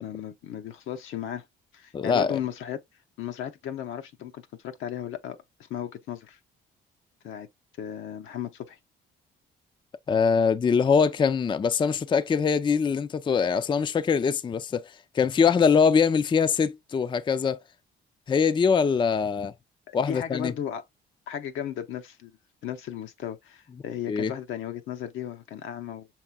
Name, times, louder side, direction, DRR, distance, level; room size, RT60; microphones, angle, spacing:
voice 1, 0.0-1.5 1.7-2.8 3.2-6.4 7.2-7.5 7.8-8.8 19.9-20.8 21.3-22.4 22.6-26.1, left 10 dB, 80° left, 0.7 m, -35 dB
voice 2, 1.9-2.4 10.1-17.6 18.3-19.5 19.9-20.5 24.1-24.3, left 6 dB, 25° left, 0.4 m, -23 dB
6.0 x 3.3 x 2.3 m
cardioid pair, 90°, 20 cm